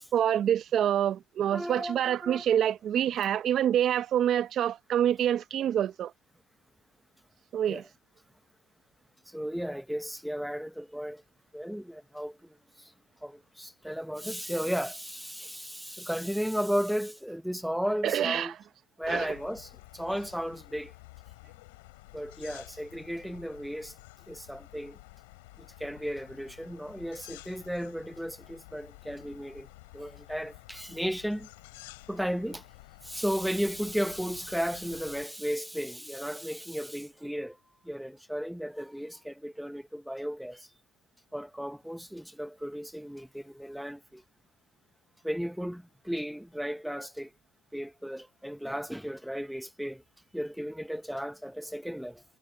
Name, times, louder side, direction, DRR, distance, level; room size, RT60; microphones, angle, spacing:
voice 1, 0.1-6.1 7.5-7.8 18.0-18.5 19.1-19.3, right 10 dB, 45° right, 0.7 m, -26 dB
voice 2, 1.5-2.4 7.7-7.8 9.3-11.2 11.5-12.9 13.2-18.5 19.0-20.9 22.1-23.9 24.3-25.0 25.6-29.7 29.9-31.5 32.1-32.6 33.0-37.6 37.8-40.7 41.3-44.2 45.2-47.3 47.7-50.0 50.3-52.2, equal, ahead, 0.8 m, -35 dB
sound 1, 19.0-35.3, left 23 dB, 85° left, 4.3 m, -52 dB
supercardioid pair, 100°, 0 cm